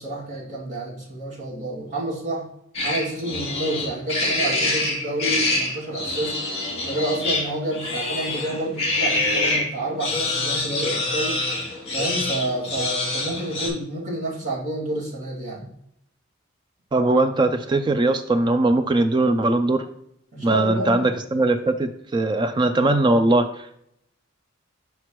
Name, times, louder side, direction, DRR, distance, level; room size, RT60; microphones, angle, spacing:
voice 1, 0.0-2.5 2.8-6.4 6.8-11.4 11.9-15.7 20.3-21.1, right 1 dB, 35° right, -5 dB, 2.4 m, -29 dB
sound 1, 2.7-9.7 10.0-13.7, left 2 dB, 30° left, 2.2 m, -25 dB
voice 2, 16.9-19.8 20.4-23.8, right 2 dB, 20° right, 9 dB, 0.3 m, -20 dB
5.9 x 5.7 x 3.0 m, 0.74 s
head